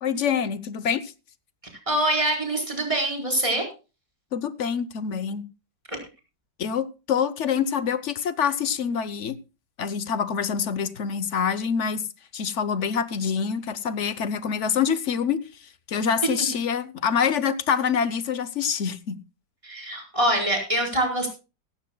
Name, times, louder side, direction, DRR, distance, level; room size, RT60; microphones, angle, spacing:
voice 1, 0.0-1.1 4.3-5.4 6.6-9.4 9.8-12.0 12.3-19.2, left 7 dB, 55° left, 0.9 m, -26 dB
voice 2, 1.9-3.6 5.9-6.0 19.6-21.3, right 1 dB, 15° right, 4.6 m, -24 dB
16.5 x 15.0 x 2.2 m
omnidirectional pair, 1.9 m